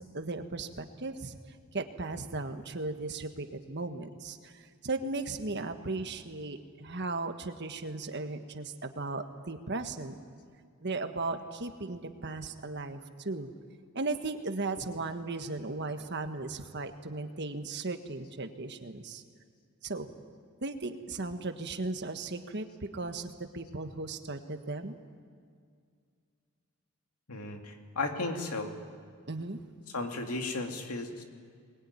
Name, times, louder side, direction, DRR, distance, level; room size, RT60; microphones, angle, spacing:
voice 1, 0.0-1.4 1.7-10.2 10.8-13.5 13.9-19.2 19.8-20.1 20.6-24.9 29.3-29.6, right 3 dB, 50° right, 7 dB, 1.5 m, -36 dB
voice 2, 27.3-28.7 29.9-31.2, left 2 dB, 85° left, 4 dB, 2.5 m, -35 dB
23.0 x 20.5 x 9.7 m, 2.2 s
head